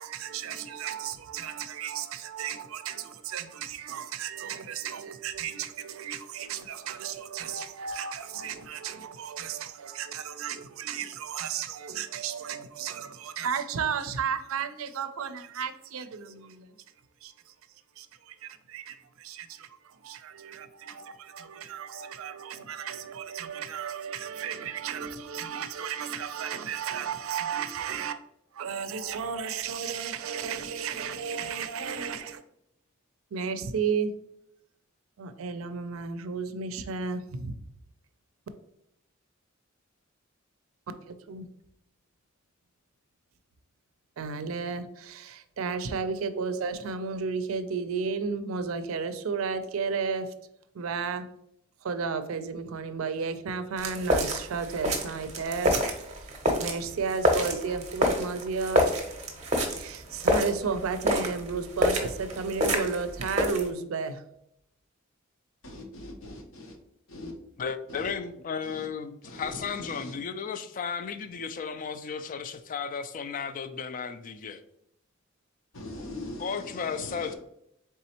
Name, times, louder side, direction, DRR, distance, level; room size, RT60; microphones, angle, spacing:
voice 1, 0.0-16.7 17.2-17.5 18.0-28.2 28.5-32.4 33.3-34.1 35.2-37.5 41.1-41.5 44.2-50.3 50.7-51.3 51.8-56.3 56.6-58.9 59.7-64.2, right 6 dB, 75° right, 0.4 m, -33 dB
sound 1, 53.8-63.7, equal, 35° right, 0.7 m, -28 dB
voice 2, 65.6-66.7 67.1-67.3 67.9-68.1 68.6-68.8 69.2-69.5 69.9-70.1 75.7-76.5 76.7-77.4, left 1 dB, 70° left, 0.9 m, -41 dB
voice 3, 67.6-74.6 76.4-77.4, left 6 dB, 40° left, 0.3 m, -34 dB
4.1 x 3.5 x 2.8 m
head